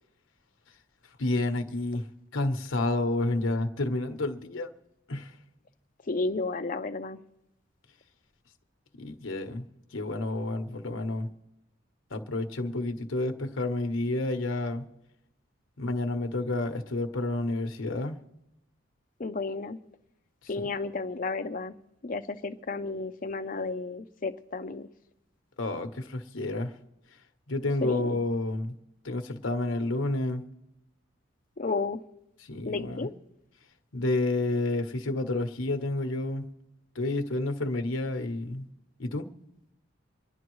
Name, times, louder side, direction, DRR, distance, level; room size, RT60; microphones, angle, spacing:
voice 1, 1.2-2.1 2.3-4.7 5.1-5.3 9.0-9.6 9.9-11.3 12.1-14.9 15.8-18.2 20.6-20.7 25.6-26.7 27.5-28.7 29.0-30.4 32.4-33.1 33.9-36.5 36.9-38.7 39.0-39.3, left 2 dB, 75° left, 6 dB, 1.1 m, -30 dB
voice 2, 6.1-7.2 19.2-19.8 20.5-21.7 22.0-24.9 27.8-28.2 31.6-32.0 32.7-33.1, left 3 dB, 40° left, 8 dB, 0.6 m, -32 dB
26.0 x 10.5 x 3.1 m, 0.88 s
head